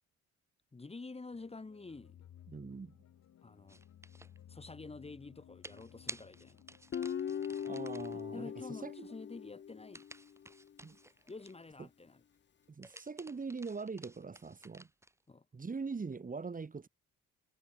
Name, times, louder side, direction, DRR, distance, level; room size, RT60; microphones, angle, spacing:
voice 1, 0.7-2.2 3.4-3.8 4.5-6.6 8.3-10.0 11.3-12.2 15.3-15.5, left 3 dB, 20° left, 1.7 m, -48 dB
sound 1, 1.3-8.6, left 10 dB, 65° left, 2.6 m, -59 dB
voice 2, 2.5-2.9 7.6-8.5 8.8-9.1 10.8-11.0 12.7-14.9 15.5-16.9, right 4 dB, 25° right, 2.0 m, -42 dB
sound 2, 3.7-4.4 5.6-8.2 9.9-11.7 12.6-15.2, right 1 dB, 10° right, 6.1 m, -52 dB
Guitar, 6.9-10.2, left 8 dB, 35° left, 0.7 m, -40 dB
cardioid pair, 90°, 30 cm